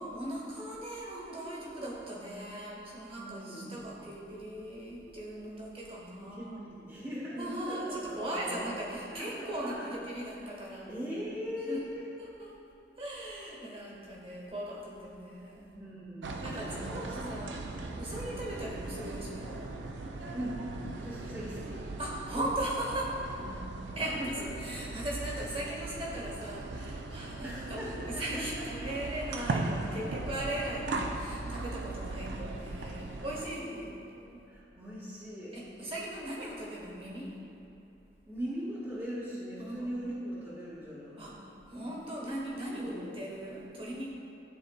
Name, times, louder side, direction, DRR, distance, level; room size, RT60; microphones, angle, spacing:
voice 1, 0.0-6.6 7.4-10.9 11.7-11.8 12.2-12.5 13.0-15.7 16.4-17.6 18.0-19.7 22.0-23.2 24.0-34.0 35.5-37.3 39.6-40.0 41.2-41.3 41.7-44.1, right 1 dB, 30° right, -4 dB, 1.1 m, -38 dB
voice 2, 3.2-3.9 6.2-9.9 10.7-12.1 15.7-18.2 20.3-20.7 20.9-21.9 23.4-24.5 27.4-28.4 29.4-29.6 33.2-33.3 34.1-35.6 38.3-41.4 42.8-43.1, equal, 15° right, -9 dB, 0.8 m, -41 dB
sound 1, 16.2-33.5, right 2 dB, 85° right, 0.4 m, -39 dB
11.0 x 3.9 x 2.2 m, 2.7 s
head